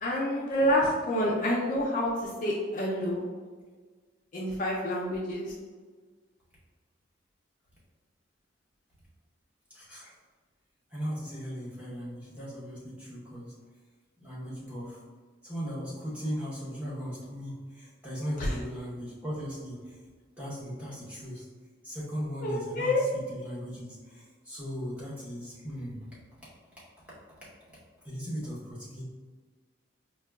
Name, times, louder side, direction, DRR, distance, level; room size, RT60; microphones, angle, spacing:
voice 1, 0.0-2.1 2.4-3.2 4.3-5.5 18.4-18.5 22.4-23.0, left 1 dB, 40° left, -4 dB, 0.4 m, -28 dB
voice 2, 9.7-10.1 10.9-13.5 14.2-15.0 15.4-19.9 20.4-21.4 21.8-26.0 27.4-27.5 28.0-29.0, equal, 5° right, -8 dB, 0.8 m, -38 dB
4.4 x 2.2 x 2.2 m, 1.4 s
head